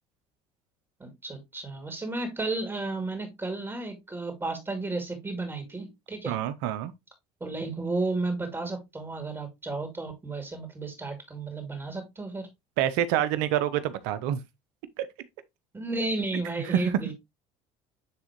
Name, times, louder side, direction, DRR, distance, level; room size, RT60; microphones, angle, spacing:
voice 1, 1.0-6.4 7.4-12.5 15.7-17.1, right 3 dB, 20° right, 2.7 m, -33 dB
voice 2, 6.3-6.9 12.8-14.4 15.0-15.1 16.7-16.8, right 11 dB, 80° right, 0.9 m, -27 dB
10.0 x 3.7 x 3.0 m
supercardioid pair, 80°, 15 cm